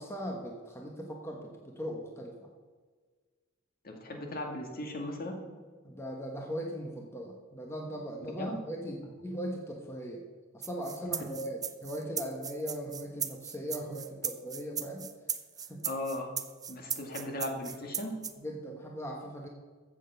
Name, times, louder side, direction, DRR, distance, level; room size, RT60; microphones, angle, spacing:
voice 1, 0.0-2.5 5.8-10.3 10.5-15.1 15.7-15.8 18.4-19.5, equal, 15° left, 1 dB, 1.2 m, -39 dB
voice 2, 3.8-5.4 8.4-8.6 15.8-16.3 16.7-18.1, left 1 dB, 50° left, 2 dB, 2.0 m, -37 dB
sound 1, 10.6-18.3, right 7 dB, 20° right, 0.6 m, -37 dB
14.5 x 7.4 x 5.7 m, 1.5 s
head